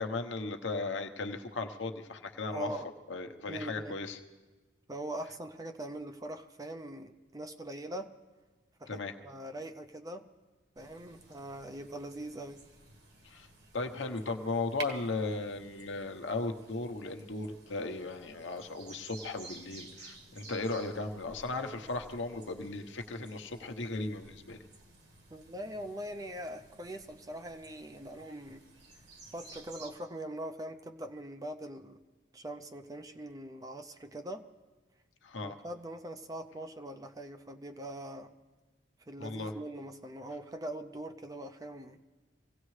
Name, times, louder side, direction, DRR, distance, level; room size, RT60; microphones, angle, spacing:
voice 1, 0.0-2.7 3.1-4.2 8.9-9.1 13.2-13.5 13.7-24.7 35.2-35.6 39.2-39.5, left 3 dB, 70° left, 4 dB, 1.0 m, -36 dB
voice 2, 2.5-2.9 3.5-4.0 4.9-8.1 8.8-10.3 10.8-12.6 25.3-28.7 29.3-32.0 32.3-34.5 35.4-38.3 39.1-42.0, right 1 dB, 20° right, 8 dB, 0.5 m, -42 dB
sound 1, 10.8-29.9, right 3 dB, 55° right, 1.7 m, -53 dB
25.0 x 17.0 x 3.2 m, 1.2 s
head